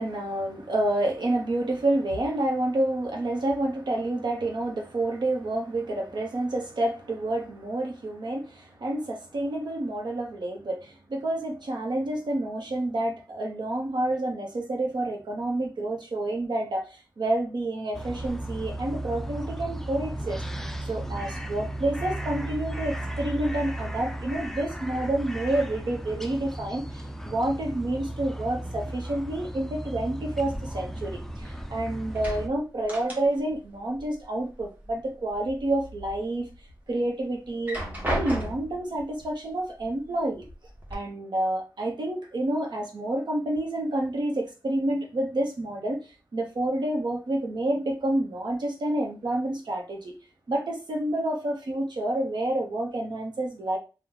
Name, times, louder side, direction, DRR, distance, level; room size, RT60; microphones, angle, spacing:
voice 1, 0.0-20.4 20.8-36.5 36.9-37.8 38.1-40.4 40.9-46.0 46.3-50.1 50.5-53.8, right 1 dB, 70° right, 0.9 m, -29 dB
sound 1, 17.9-32.5, right 1 dB, 5° left, 0.3 m, -35 dB
sound 2, 30.5-31.7 32.0-33.6 33.9-34.9 35.3-36.1 36.6-36.7 37.5-38.9 39.8-39.9 40.3-40.9, equal, 20° right, 1.1 m, -35 dB
3.0 x 2.3 x 3.7 m
wide cardioid pair, 100°, 8 cm